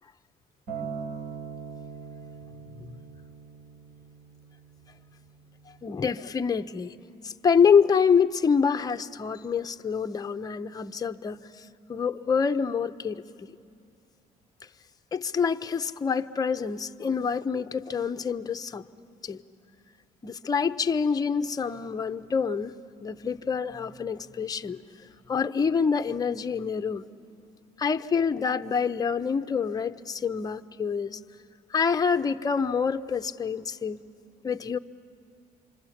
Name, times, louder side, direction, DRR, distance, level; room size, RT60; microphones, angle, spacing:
Acoustic guitar, 0.7-5.0 5.8-5.9, right 6 dB, 75° right, 5.2 m, -40 dB
voice 1, 5.8-7.0 7.2-13.6 15.1-18.8 19.2-19.4 20.2-22.7 23.0-24.8 25.3-27.1 27.8-31.2 31.7-34.0 34.4-34.8, left 6 dB, 20° left, 8 dB, 0.6 m, -26 dB
27.5 x 25.0 x 7.1 m, 2.6 s
cardioid pair, 110°, 17 cm